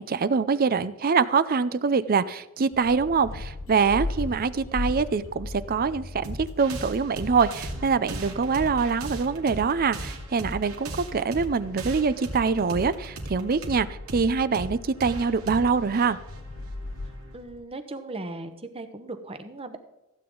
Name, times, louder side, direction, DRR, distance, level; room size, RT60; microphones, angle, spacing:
voice 1, 0.0-16.2, right 5 dB, 45° right, 15 dB, 0.5 m, -24 dB
sound 1, 2.7-17.6, left 2 dB, 60° left, 0.9 m, -39 dB
sound 2, 6.2-17.3, right 1 dB, 75° right, 2.5 m, -38 dB
voice 2, 17.3-19.8, right 2 dB, 25° right, 8 dB, 1.1 m, -37 dB
15.5 x 8.7 x 3.9 m, 0.96 s
head